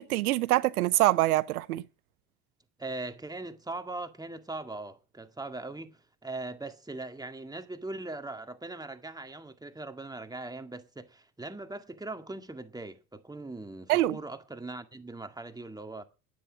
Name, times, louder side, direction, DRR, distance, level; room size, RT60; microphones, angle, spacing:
voice 1, 0.0-1.8 13.9-14.2, right 16 dB, 85° right, 0.7 m, -25 dB
voice 2, 2.8-16.0, right 2 dB, 10° right, 2.1 m, -40 dB
10.5 x 10.0 x 8.8 m
hypercardioid pair, 70°, 43 cm